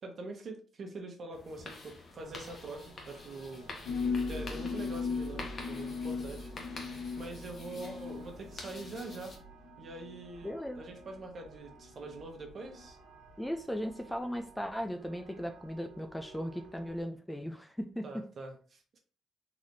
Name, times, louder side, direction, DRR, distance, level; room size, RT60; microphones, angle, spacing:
voice 1, 0.0-3.7 4.3-6.5 7.2-9.3 9.8-13.0 18.0-19.0, right 2 dB, 50° right, 3 dB, 1.1 m, -44 dB
sound 1, 1.3-9.4, left 2 dB, 45° left, 1.1 m, -48 dB
sound 2, 2.2-17.0, right 3 dB, 75° right, 0.9 m, -56 dB
sound 3, 3.9-10.2 11.0-11.1 12.0-12.2 12.8-12.9, left 4 dB, 85° left, 0.7 m, -37 dB
voice 2, 10.4-10.8 13.4-18.2, equal, 5° left, 6 dB, 0.4 m, -37 dB
4.0 x 3.0 x 2.6 m, 0.39 s
cardioid pair, 90°, 0 cm